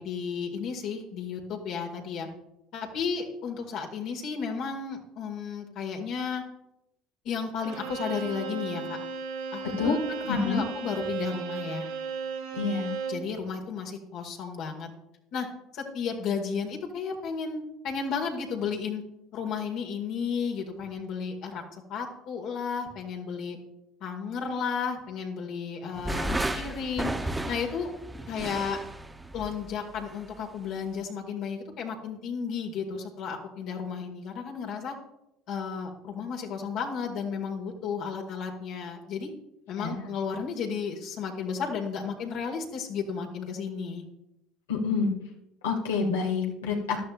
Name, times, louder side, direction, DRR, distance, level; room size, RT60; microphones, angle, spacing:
voice 1, 0.0-2.3 2.7-6.4 7.2-9.0 9.5-11.9 13.1-14.9 15.3-15.5 15.7-19.0 19.3-21.6 21.9-23.6 24.0-27.9 28.3-28.8 29.3-35.0 35.5-39.3 39.7-44.0, left 6 dB, 60° left, 1 dB, 2.0 m, -33 dB
Bowed string instrument, 7.6-13.3, right 5 dB, 85° right, 2.1 m, -35 dB
voice 2, 10.3-10.6 12.5-12.9 39.8-40.0 44.7-45.1 45.6-47.0, left 4 dB, 85° left, 1 dB, 2.0 m, -27 dB
sound 1, 26.0-30.4, right 1 dB, 15° right, 0.8 m, -33 dB
14.5 x 11.5 x 2.5 m, 0.87 s
hypercardioid pair, 70°, 0 cm